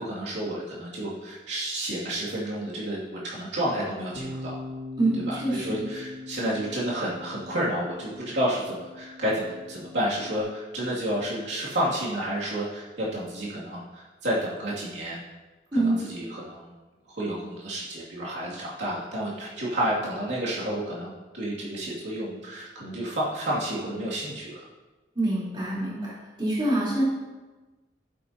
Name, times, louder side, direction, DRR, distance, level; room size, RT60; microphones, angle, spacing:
voice 1, 0.0-4.6 5.3-15.2 15.7-16.7 17.1-24.5, right 1 dB, 75° right, -7 dB, 2.6 m, -30 dB
Bass guitar, 4.2-10.4, left 2 dB, 55° right, 1.6 m, -41 dB
voice 2, 5.0-5.8 15.7-16.0 25.2-26.1 26.4-27.0, right 1 dB, 25° right, -7 dB, 3.8 m, -25 dB
12.0 x 10.5 x 2.9 m, 1.2 s
head